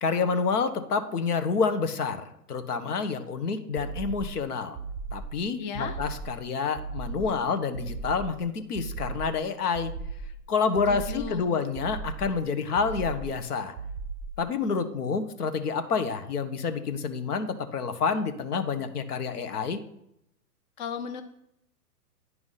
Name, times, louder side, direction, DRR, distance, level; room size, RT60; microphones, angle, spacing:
voice 1, 0.0-4.8 5.1-9.9 10.5-13.7 14.4-19.8, left 5 dB, 65° left, 9 dB, 1.3 m, -28 dB
sound 1, 3.8-4.4 4.7-5.4 5.7-6.4 6.8-7.4 7.7-8.4 8.7-9.4 9.7-10.4 10.8-11.4 11.8-12.4 12.8-13.4 13.8-14.4, right 4 dB, 15° right, 0.8 m, -37 dB
voice 2, 5.6-6.0 10.9-11.6 20.8-21.2, left 6 dB, 30° left, 7 dB, 0.5 m, -35 dB
9.7 x 4.8 x 5.7 m, 0.78 s
hypercardioid pair, 125°, 49 cm